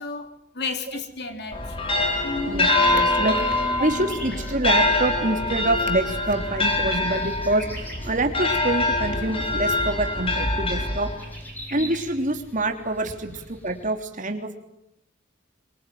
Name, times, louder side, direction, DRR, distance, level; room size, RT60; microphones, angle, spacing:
voice 1, 0.0-1.9 2.2-2.6 4.3-4.4 11.8-12.0 13.3-13.4, left 3 dB, 55° left, 7 dB, 3.2 m, -33 dB
sound 1, 1.5-11.4, left 2 dB, 30° left, 4.6 m, -24 dB
sound 2, 2.4-13.9, equal, 10° left, 7.0 m, -43 dB
voice 2, 2.5-3.4 3.8-11.1 11.7-14.6, right 2 dB, 40° right, 5 dB, 3.3 m, -26 dB
24.5 x 24.5 x 9.3 m, 0.80 s
head